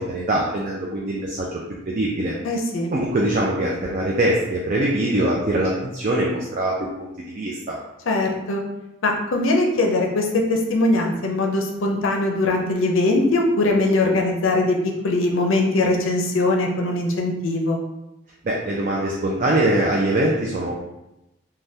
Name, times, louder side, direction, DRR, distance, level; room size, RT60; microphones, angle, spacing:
voice 1, 0.0-1.6 1.9-2.3 2.9-7.8 18.4-20.7, right 1 dB, 40° right, -3 dB, 0.4 m, -23 dB
voice 2, 2.4-2.9 8.1-8.6 9.0-14.8 15.0-17.8, left 2 dB, 70° left, 1 dB, 0.5 m, -21 dB
3.3 x 2.2 x 2.7 m, 0.90 s
head